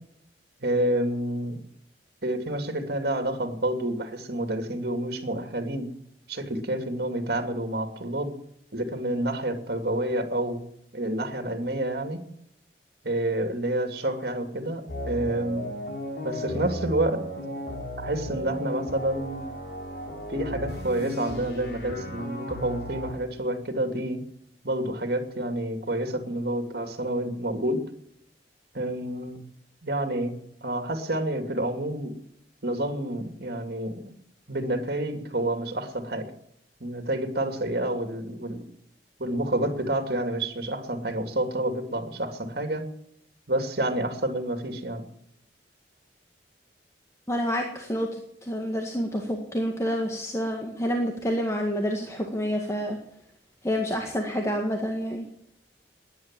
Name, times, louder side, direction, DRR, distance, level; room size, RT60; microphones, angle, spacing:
voice 1, 0.6-1.6 2.2-5.9 6.3-8.3 8.7-10.6 10.9-12.2 13.0-15.7 16.2-17.2 18.0-19.4 20.3-24.2 24.6-27.8 28.7-29.5 29.8-32.1 32.6-34.1 34.5-36.3 36.8-38.6 39.2-42.8 43.5-45.0, right 1 dB, 60° right, 6 dB, 2.7 m, -29 dB
sound 1, 14.9-23.1, equal, 60° left, 4.2 m, -35 dB
voice 2, 47.3-53.0 53.6-55.3, equal, 15° left, 1 dB, 1.8 m, -28 dB
17.5 x 10.5 x 7.7 m, 0.73 s
head